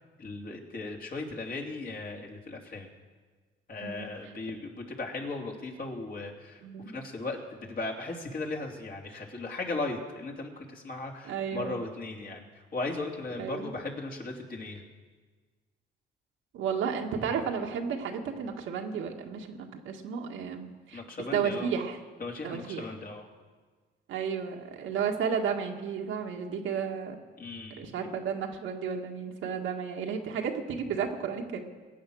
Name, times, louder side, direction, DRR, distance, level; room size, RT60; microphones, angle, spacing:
voice 1, 0.2-2.9 3.7-6.6 6.9-14.8 20.9-21.7 22.2-23.3 27.4-27.8, left 3 dB, 45° left, 0 dB, 2.9 m, -37 dB
voice 2, 6.6-6.9 11.2-11.8 13.4-13.7 16.5-21.0 21.3-22.0 22.4-22.9 24.1-27.2 27.8-31.6, right 6 dB, 85° right, 2 dB, 1.8 m, -33 dB
22.0 x 8.7 x 6.4 m, 1.4 s
cardioid pair, 90°, 20 cm